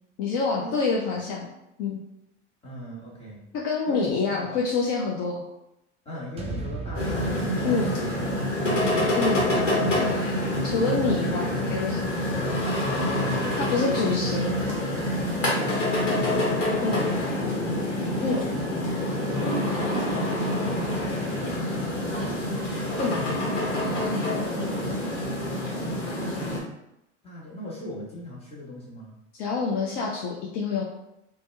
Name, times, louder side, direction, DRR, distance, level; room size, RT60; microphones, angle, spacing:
voice 1, 0.2-1.5 1.8-2.0 3.5-5.4 7.6-7.9 9.1-9.4 10.6-12.2 13.6-14.5 16.8-17.0 18.2-18.4 23.0-23.3 24.0-24.3 29.3-30.8, left 4 dB, 55° left, -3 dB, 0.6 m, -27 dB
voice 2, 2.6-3.4 3.9-4.6 6.0-8.1 13.1-14.1 15.6-17.9 19.0-19.8 21.4-22.1 22.5-22.6 23.1-23.4 25.5-26.1 27.2-29.2, left 1 dB, 15° left, -7 dB, 1.4 m, -40 dB
sound 1, 6.4-10.6, right 3 dB, 15° right, 0.4 m, -39 dB
sound 2, 6.9-26.6, left 1 dB, 85° left, 1.1 m, -26 dB
2.8 x 2.2 x 3.2 m, 0.85 s
hypercardioid pair, 80°, 37 cm